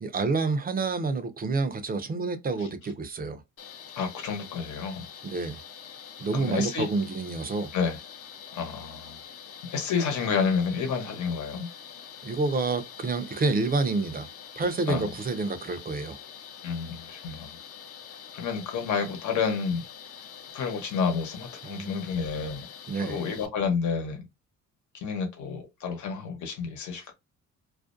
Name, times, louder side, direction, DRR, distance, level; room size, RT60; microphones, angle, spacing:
voice 1, 0.0-3.4 5.2-5.6 6.2-7.7 12.2-14.3 14.6-16.2 21.6-22.0 22.9-23.2, right 3 dB, 30° right, 0.5 m, -28 dB
sound 1, 3.6-23.5, left 8 dB, 50° left, 0.6 m, -45 dB
voice 2, 3.9-5.1 6.3-6.9 7.7-8.0 8.5-9.2 9.7-11.7 14.9-15.1 16.6-17.6 18.3-19.8 20.5-22.7 23.0-24.3 24.9-27.1, left 5 dB, 75° left, 1.0 m, -30 dB
2.4 x 2.1 x 2.5 m
cardioid pair, 90°, 30 cm